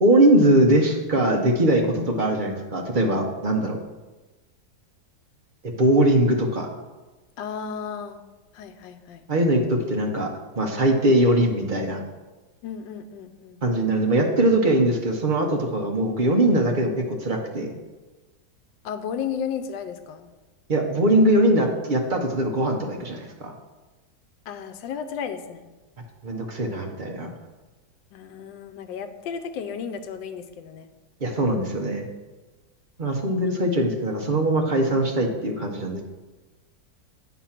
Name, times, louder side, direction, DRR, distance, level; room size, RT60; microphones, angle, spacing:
voice 1, 0.0-3.8 5.6-6.7 9.3-10.3 10.6-12.0 13.6-17.7 20.7-23.5 26.2-27.3 31.2-32.1 33.0-36.0, right 1 dB, 50° right, 2 dB, 0.6 m, -21 dB
voice 2, 7.4-8.2 8.5-9.3 12.6-13.6 18.8-20.3 24.5-25.7 28.1-30.9, left 7 dB, 85° left, 9 dB, 1.3 m, -33 dB
8.5 x 4.0 x 5.8 m, 1.2 s
omnidirectional pair, 2.0 m